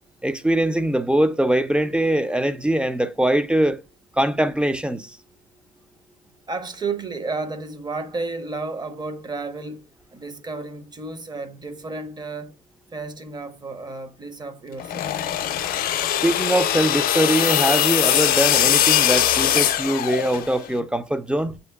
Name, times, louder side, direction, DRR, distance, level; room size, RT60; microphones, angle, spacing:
voice 1, 0.2-3.8 4.1-5.2 16.2-21.6, right 1 dB, 5° right, 0.3 m, -22 dB
voice 2, 6.5-12.5 12.9-15.1, right 3 dB, 25° right, 0.7 m, -32 dB
sound 1, 14.8-20.7, left 11 dB, 60° left, 0.5 m, -21 dB
7.5 x 2.7 x 2.2 m
cardioid pair, 110°, 17 cm